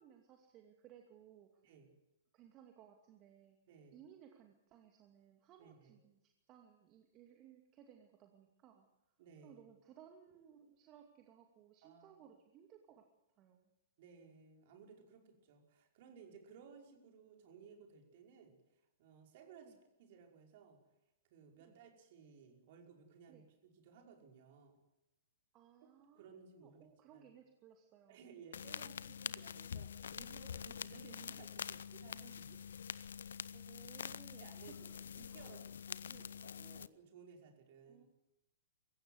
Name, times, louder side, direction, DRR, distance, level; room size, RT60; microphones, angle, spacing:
voice 1, 0.0-1.6 2.3-3.6 3.9-8.9 9.4-13.1 13.4-13.7 19.6-19.8 21.7-21.8 23.3-23.5 25.5-28.2 33.5-35.0 35.3-35.6 36.1-36.4 37.8-38.1, right 9 dB, 30° right, 3 dB, 2.5 m, -61 dB
voice 2, 3.7-4.0 5.6-5.9 9.2-9.7 11.8-12.2 14.0-20.8 21.3-24.8 26.1-27.3 28.1-32.6 33.2-33.4 34.4-38.1, right 6 dB, 50° right, 3 dB, 5.3 m, -59 dB
sound 1, 28.5-36.9, left 7 dB, 70° left, 0.7 m, -46 dB
23.5 x 15.5 x 8.1 m, 0.91 s
figure-of-eight pair, 110°, 0 cm